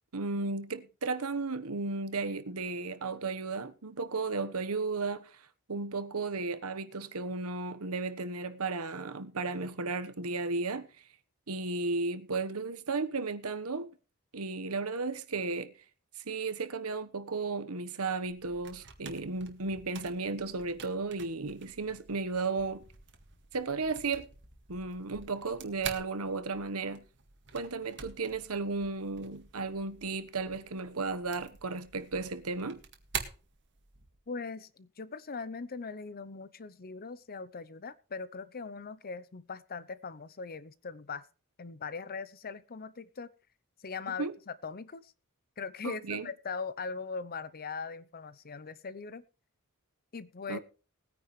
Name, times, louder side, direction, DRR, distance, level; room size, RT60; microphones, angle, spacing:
voice 1, 0.1-5.4 5.7-10.9 11.5-13.9 14.3-15.7 16.2-22.8 23.5-24.3 24.7-27.0 27.5-32.8 44.2-44.3 45.8-46.3 50.5-50.6, right 3 dB, 75° right, 1.2 m, -34 dB
sound 1, 18.2-34.2, right 7 dB, 55° right, 2.0 m, -47 dB
voice 2, 34.3-41.2 41.6-43.3 43.8-45.1 45.6-49.2 50.1-50.6, left 4 dB, 45° left, 0.7 m, -40 dB
19.5 x 9.7 x 3.2 m
head